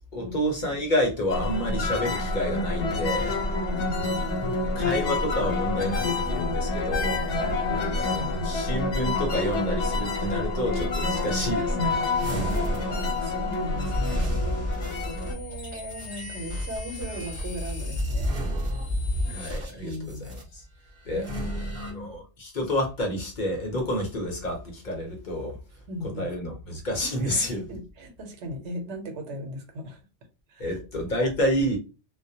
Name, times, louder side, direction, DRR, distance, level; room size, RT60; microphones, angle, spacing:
voice 1, 0.1-3.4 4.7-7.2 7.7-12.0 19.2-20.6 21.0-21.3 21.8-25.6 26.2-27.7 30.6-31.8, equal, 50° left, 0.8 m, -29 dB
sound 1, 1.3-15.3, left 2 dB, 80° left, 1.1 m, -28 dB
voice 2, 3.5-4.6 7.4-8.3 11.1-11.7 12.0-18.3 19.8-20.4 21.1-22.1 25.9-26.6 27.2-30.0 30.5-30.8, equal, 85° right, 1.0 m, -38 dB
sound 2, 12.1-20.4 21.1-21.9, equal, 30° right, 0.8 m, -31 dB
2.3 x 2.2 x 2.7 m
omnidirectional pair, 1.2 m